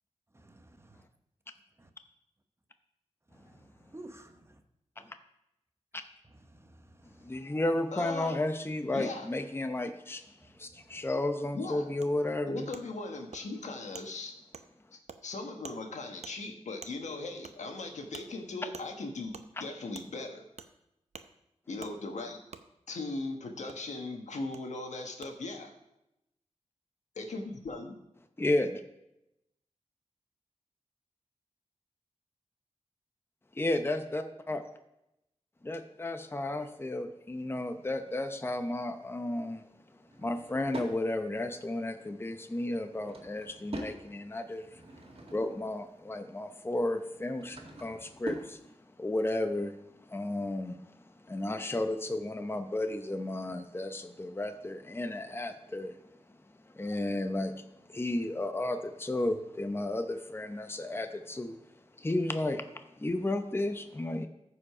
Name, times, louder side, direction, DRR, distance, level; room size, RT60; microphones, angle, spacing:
voice 1, 0.3-1.0 1.8-1.9 3.3-4.6 6.2-7.5 10.4-11.1, right 1 dB, 20° right, 1.0 m, -54 dB
voice 2, 7.0-12.7 28.4-28.8 33.5-34.6 35.6-39.6 40.2-44.8 45.3-48.6 49.0-56.0 56.6-61.6 62.0-64.3, left 1 dB, 20° left, 0.7 m, -33 dB
voice 3, 7.9-8.4 8.9-9.3 11.5-11.9 12.5-14.3 15.2-20.4 21.7-22.4 22.9-25.7 27.1-28.0, left 2 dB, 80° left, 1.4 m, -38 dB
Wood, 12.0-12.1 12.7-12.8 13.3-13.4 13.9-14.1 14.5-14.7 15.1-15.2 15.6-15.8 16.2-16.3 16.8-16.9 17.4-17.6 18.1-18.3 18.7-18.9 19.3-19.5 19.9-20.1 20.6-20.7 21.1-21.3 21.8-21.9 22.5-22.6 23.7-23.8 24.5-24.6 25.2-25.3, right 5 dB, 70° right, 0.7 m, -46 dB
Drawer open or close / Wood, 40.0-41.0 42.7-44.0 44.5-45.7 47.0-48.5, right 2 dB, 50° right, 1.9 m, -44 dB
14.0 x 5.0 x 4.9 m
wide cardioid pair, 70°, 12 cm